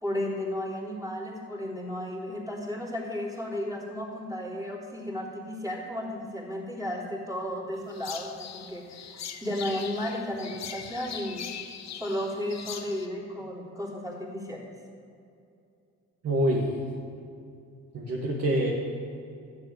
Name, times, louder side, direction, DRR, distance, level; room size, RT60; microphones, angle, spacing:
voice 1, 0.0-11.5 12.0-14.7, left 1 dB, 10° right, -5 dB, 3.5 m, -34 dB
sound 1, 7.9-13.1, left 8 dB, 60° left, 1.1 m, -41 dB
voice 2, 16.2-16.8 17.9-18.7, right 1 dB, 55° right, -3 dB, 2.0 m, -26 dB
12.5 x 6.7 x 9.4 m, 2.5 s
cardioid pair, 90°, 30 cm